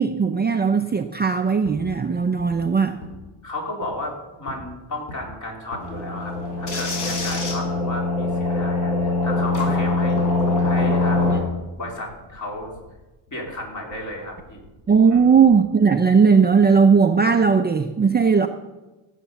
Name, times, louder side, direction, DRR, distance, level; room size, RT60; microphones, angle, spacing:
voice 1, 0.0-3.0 6.7-6.8 14.9-18.5, right 5 dB, 20° right, 5 dB, 0.6 m, -17 dB
sound 1, 1.6-1.8 2.4-2.5 3.0-3.2 3.8-3.9 4.5-4.7 5.1-5.3 5.7-5.9 6.4-6.5 7.1-7.2 7.6-7.8 8.3-8.5 8.9-9.1 9.5-9.7 10.8-12.9 13.3-15.6, left 2 dB, 80° left, 4.4 m, -43 dB
voice 2, 3.4-10.3 10.6-11.4 11.8-12.7 13.3-14.6 15.0-15.4, left 1 dB, 35° left, 0 dB, 3.9 m, -33 dB
sound 2, 5.8-11.4, left 3 dB, 55° left, 5.1 m, -22 dB
15.0 x 8.4 x 7.0 m, 1.1 s
cardioid pair, 135°, 49 cm